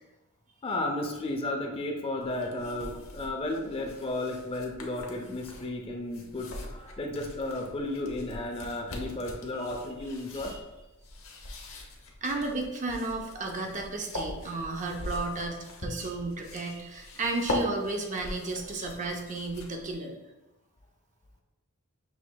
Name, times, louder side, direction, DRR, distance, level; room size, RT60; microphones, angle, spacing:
voice 1, 0.6-10.5, left 2 dB, 25° left, 2 dB, 0.5 m, -33 dB
sound 1, 2.2-19.9, left 1 dB, 70° left, 0.8 m, -41 dB
voice 2, 12.2-20.1, right 2 dB, 35° right, 2 dB, 0.5 m, -33 dB
6.1 x 3.1 x 2.2 m, 1.0 s
head